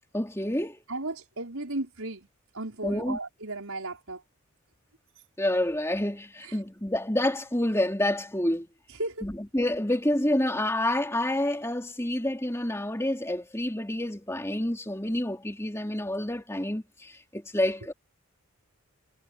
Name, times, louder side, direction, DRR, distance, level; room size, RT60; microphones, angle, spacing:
voice 1, 0.1-0.8 2.8-3.2 5.4-8.7 9.2-17.9, left 1 dB, 10° left, 3.2 m, -28 dB
voice 2, 0.9-2.3 2.5-4.2 6.4-6.6 9.0-9.3, right 2 dB, 75° right, 5.5 m, -35 dB
head